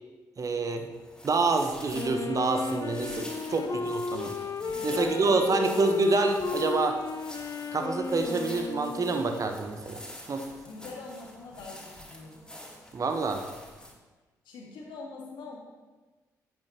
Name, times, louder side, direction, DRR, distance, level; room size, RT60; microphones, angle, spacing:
voice 1, 0.4-0.9 1.2-4.3 4.8-7.0 7.7-10.0 10.3-10.4 12.9-13.4, right 3 dB, 40° right, 5 dB, 1.1 m, -27 dB
sound 1, 0.9-13.9, left 1 dB, 10° left, 3.0 m, -47 dB
Wind instrument woodwind instrument, 1.9-9.6, left 4 dB, 40° left, 0.6 m, -34 dB
voice 2, 4.6-5.8 10.6-12.4 14.4-15.6, left 3 dB, 65° left, -1 dB, 2.0 m, -43 dB
10.5 x 8.8 x 3.0 m, 1.3 s
figure-of-eight pair, 40°, 9 cm